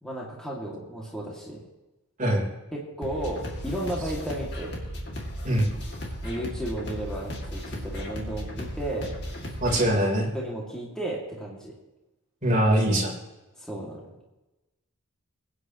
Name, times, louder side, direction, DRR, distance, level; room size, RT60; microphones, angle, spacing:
voice 1, 0.0-1.6 2.7-4.7 6.2-9.1 10.3-11.7 13.6-14.1, right 1 dB, 5° left, -5 dB, 2.3 m, -34 dB
sound 1, 3.0-9.9, equal, 50° left, 2.5 m, -35 dB
voice 2, 9.6-10.3 12.4-13.1, right 1 dB, 30° right, -3 dB, 3.7 m, -22 dB
21.0 x 9.7 x 3.1 m, 1.0 s
head